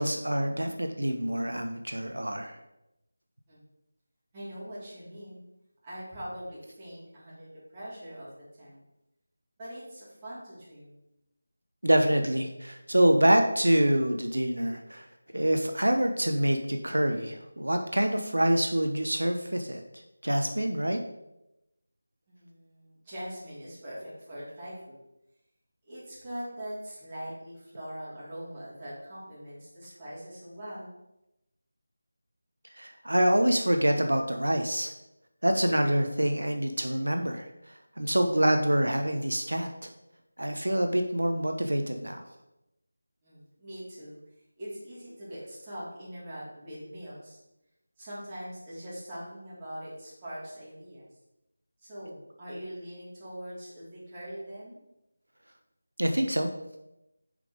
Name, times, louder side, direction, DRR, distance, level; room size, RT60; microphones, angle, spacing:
voice 1, 0.0-2.6 11.8-15.1 15.3-19.8 20.2-21.0 32.8-34.9 35.4-39.9 40.4-42.2 56.0-56.5, right 1 dB, 85° right, 5 dB, 0.8 m, -26 dB
voice 2, 4.3-5.4 5.8-8.3 8.6-8.8 9.6-11.0 22.3-25.0 25.8-30.9 43.2-44.2 44.6-47.4 48.0-51.1 51.8-54.8, equal, 20° right, -9 dB, 3.1 m, -42 dB
6.9 x 5.1 x 5.0 m, 0.90 s
figure-of-eight pair, 165°, 0 cm